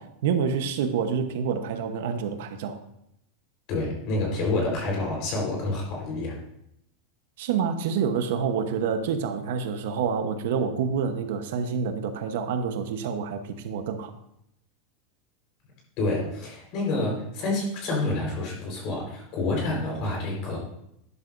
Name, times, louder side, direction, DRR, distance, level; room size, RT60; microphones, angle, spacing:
voice 1, 0.0-2.8 7.4-14.1, right 6 dB, 65° right, 7 dB, 1.1 m, -27 dB
voice 2, 3.7-6.4 16.0-20.6, left 2 dB, 35° left, -1 dB, 4.4 m, -28 dB
12.5 x 11.0 x 2.7 m, 0.78 s
supercardioid pair, 180°, 0 cm